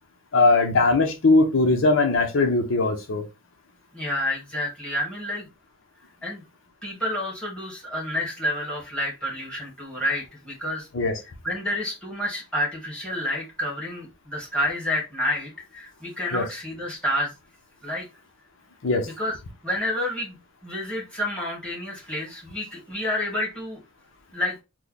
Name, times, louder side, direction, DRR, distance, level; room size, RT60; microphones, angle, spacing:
voice 1, 0.3-3.2 10.9-11.1 16.3-16.4 18.8-19.1, left 3 dB, 75° left, 0.7 m, -20 dB
voice 2, 3.9-5.5 6.2-6.4 6.8-10.9 11.4-17.3 17.8-18.1 19.2-19.3 19.6-20.4 20.6-23.8 24.3-24.6, left 1 dB, 5° left, 1.4 m, -29 dB
3.1 x 2.2 x 3.7 m
head